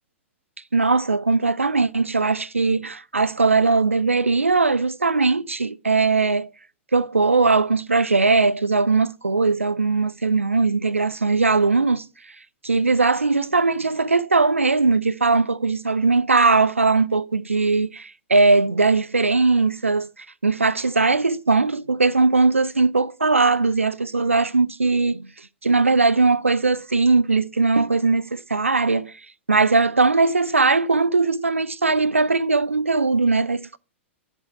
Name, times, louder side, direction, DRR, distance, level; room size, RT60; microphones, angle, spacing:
voice 1, 0.7-6.5 6.9-12.0 12.6-25.3 25.6-29.1 29.5-33.8, right 3 dB, 85° right, 0.4 m, -20 dB
9.5 x 5.3 x 5.0 m
figure-of-eight pair, 105°, 7 cm